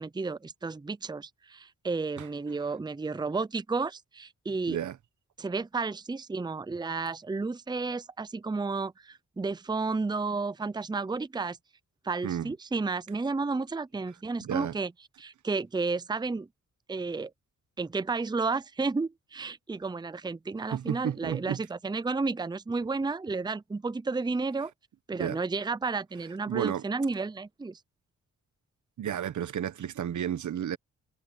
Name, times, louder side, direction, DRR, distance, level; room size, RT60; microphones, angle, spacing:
voice 1, 0.0-4.8 5.4-11.6 12.0-14.9 15.2-16.5 16.9-17.3 17.8-24.7 25.1-27.8, right 4 dB, 15° right, 0.6 m, -32 dB
voice 2, 12.2-12.5 14.4-14.8 20.7-21.6 25.2-25.4 26.5-26.8 29.0-30.8, right 10 dB, 75° right, 1.1 m, -32 dB
cardioid pair, 75°, 30 cm